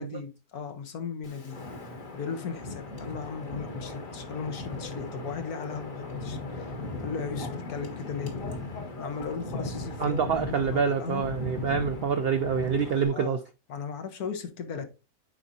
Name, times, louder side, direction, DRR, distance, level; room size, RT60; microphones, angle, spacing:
voice 1, 0.0-1.6 2.1-6.7 7.0-8.3 9.0-11.3 13.1-13.4 13.7-15.0, left 5 dB, 85° left, 1.6 m, -37 dB
Wind, 1.2-13.1, left 2 dB, 65° left, 2.0 m, -37 dB
voice 2, 10.0-13.4, right 6 dB, 70° right, 0.5 m, -26 dB
8.4 x 5.0 x 2.7 m
omnidirectional pair, 1.5 m